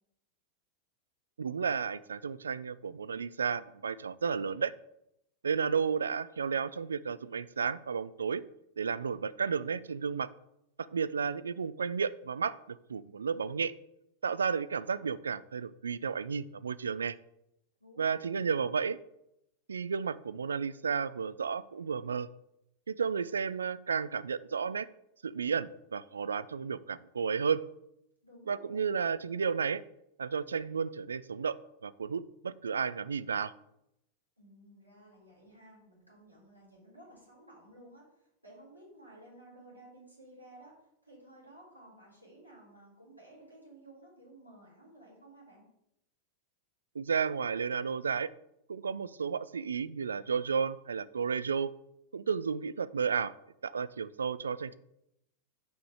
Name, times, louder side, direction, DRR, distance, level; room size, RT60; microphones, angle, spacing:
voice 1, 1.4-4.7 5.4-8.4 8.8-10.3 10.8-13.7 14.2-17.2 18.0-19.0 19.7-22.3 22.9-24.9 25.2-27.6 28.5-29.8 30.2-31.6 31.8-33.5 47.0-48.3 48.7-51.7 52.1-53.3 53.6-54.7, right 6 dB, 70° right, 16 dB, 0.3 m, -32 dB
voice 2, 17.8-18.7 28.2-28.8 34.4-40.7 41.0-45.6, right 1 dB, 85° right, -5 dB, 3.4 m, -55 dB
6.3 x 4.9 x 6.3 m, 0.81 s
figure-of-eight pair, 90°, 0 cm